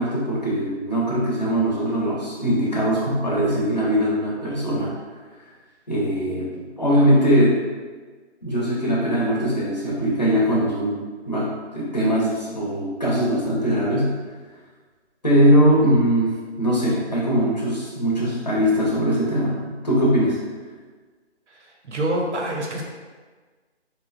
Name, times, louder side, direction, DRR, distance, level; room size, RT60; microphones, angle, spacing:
voice 1, 0.0-4.9 5.9-7.6 8.4-14.1 15.2-20.4, equal, 40° left, -6 dB, 0.5 m, -21 dB
voice 2, 21.5-22.8, right 1 dB, 80° right, 0 dB, 0.7 m, -27 dB
2.7 x 2.1 x 2.4 m, 1.4 s
figure-of-eight pair, 175°, 35 cm